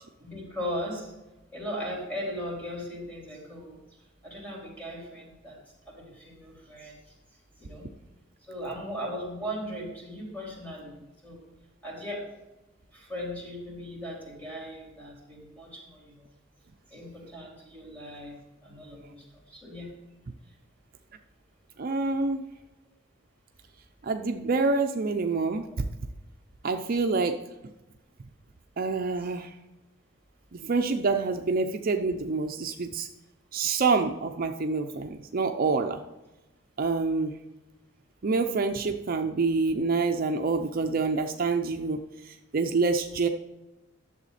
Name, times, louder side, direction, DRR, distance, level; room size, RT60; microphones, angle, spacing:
voice 1, 0.2-1.1 1.5-3.8 4.2-5.6 5.9-7.1 7.6-7.9 8.5-11.4 11.8-12.3 12.9-16.3 16.9-19.9 20.5-20.6 29.2-29.3, equal, 10° left, -4 dB, 3.9 m, -38 dB
voice 2, 21.8-22.4 24.0-25.9 26.6-27.4 28.8-29.5 30.5-33.1 33.5-36.0 36.8-37.3 38.2-43.3, right 4 dB, 50° right, 5 dB, 0.5 m, -27 dB
11.0 x 7.2 x 4.2 m, 1.0 s
head